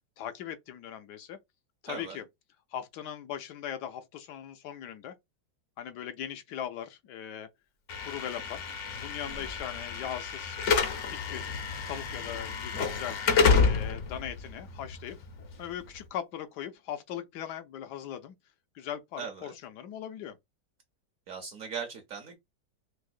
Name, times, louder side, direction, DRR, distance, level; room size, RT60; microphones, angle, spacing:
voice 1, 0.2-1.4 1.8-2.2 2.7-5.1 5.8-7.5 8.0-8.6 9.0-10.6 11.0-11.5 11.9-13.2 13.6-15.2 15.6-18.3 18.7-20.4, left 10 dB, 75° left, 1.1 m, -39 dB
voice 2, 1.9-2.2 9.2-9.5 19.2-19.5 21.3-22.4, right 6 dB, 65° right, 0.8 m, -39 dB
Slam / Alarm, 7.9-16.0, left 5 dB, 60° left, 0.8 m, -29 dB
4.7 x 2.0 x 2.4 m
omnidirectional pair, 1.9 m